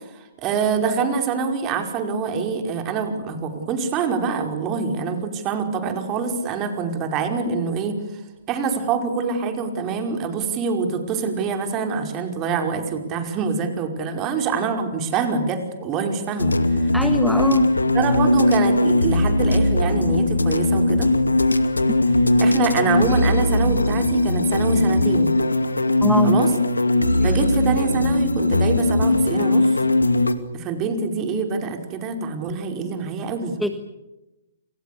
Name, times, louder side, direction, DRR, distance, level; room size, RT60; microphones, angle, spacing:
voice 1, 0.4-8.0 8.5-16.9 17.9-21.1 22.4-25.3 26.2-26.5 27.2-29.7 30.5-33.6, right 5 dB, 25° right, 5 dB, 5.2 m, -25 dB
sound 1, 16.4-30.3, left 2 dB, 85° left, 2.3 m, -19 dB
voice 2, 16.9-17.7 21.9-22.0 26.0-26.4 27.2-27.4 33.6-33.8, equal, ahead, 7 dB, 1.4 m, -24 dB
29.5 x 27.0 x 6.9 m, 1.0 s
figure-of-eight pair, 125°, 0 cm